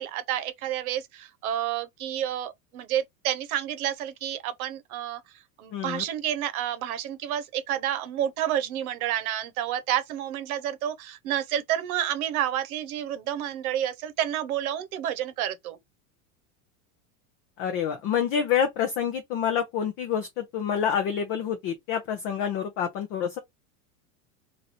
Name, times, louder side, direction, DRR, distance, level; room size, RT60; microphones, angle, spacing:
voice 1, 0.0-5.2 5.6-15.8, right 11 dB, 70° right, 0.9 m, -30 dB
voice 2, 5.7-6.0 17.6-23.4, left 8 dB, 25° left, 0.4 m, -27 dB
3.1 x 2.6 x 3.9 m
supercardioid pair, 160°, 44 cm